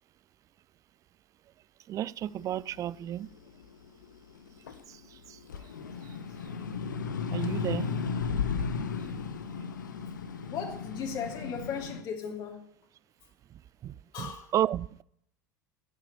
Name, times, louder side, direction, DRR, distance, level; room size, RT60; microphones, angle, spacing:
voice 1, 1.9-3.3 4.9-5.4 7.3-7.9 13.8-15.0, right 12 dB, 30° right, 0.4 m, -33 dB
sound 1, 2.4-5.0 5.4-12.0, left 5 dB, 75° left, 0.9 m, -34 dB
voice 2, 10.4-12.6 14.1-14.5, left 6 dB, 45° left, 2.8 m, -37 dB
12.0 x 9.0 x 6.9 m
figure-of-eight pair, 75°, 10 cm